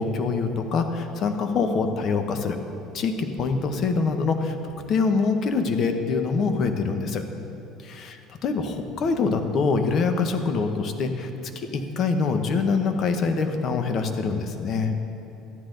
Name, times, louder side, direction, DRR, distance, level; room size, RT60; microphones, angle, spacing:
voice 1, 0.0-2.6 2.9-7.2 7.8-8.2 8.4-11.3 11.5-14.9, left 4 dB, 50° left, 6 dB, 1.0 m, -25 dB
13.5 x 9.9 x 3.9 m, 2.9 s
supercardioid pair, 90°, 0 cm